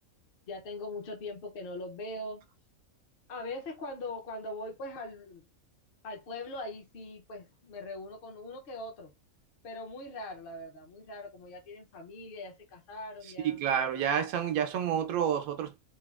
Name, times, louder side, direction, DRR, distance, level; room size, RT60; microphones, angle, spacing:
voice 1, 0.5-2.4 3.3-5.4 6.0-9.1 9.6-13.6, left 2 dB, 55° left, 0.7 m, -41 dB
voice 2, 13.4-15.8, right 8 dB, 85° right, 1.1 m, -29 dB
3.2 x 2.2 x 2.4 m
omnidirectional pair, 1.5 m